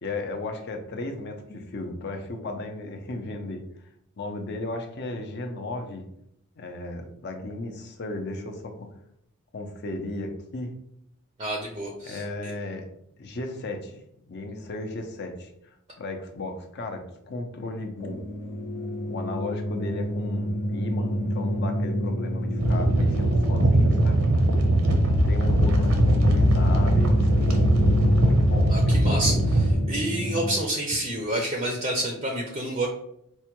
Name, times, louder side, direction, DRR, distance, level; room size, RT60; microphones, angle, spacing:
voice 1, 0.0-3.6 4.2-6.0 6.6-8.9 9.5-10.7 12.0-12.9 13.2-14.0 14.3-15.5 16.0-18.2 19.0-24.2 24.9-25.0 25.2-27.7 28.2-29.5, left 2 dB, 50° left, 4 dB, 0.5 m, -35 dB
voice 2, 11.4-12.5 28.7-29.3 29.6-32.9, right 1 dB, 25° right, 0 dB, 0.4 m, -29 dB
sound 1, 17.9-30.5, equal, 70° left, 0.8 m, -30 dB
sound 2, 22.6-29.7, right 1 dB, 85° right, 0.6 m, -20 dB
4.5 x 2.2 x 2.9 m, 0.74 s
head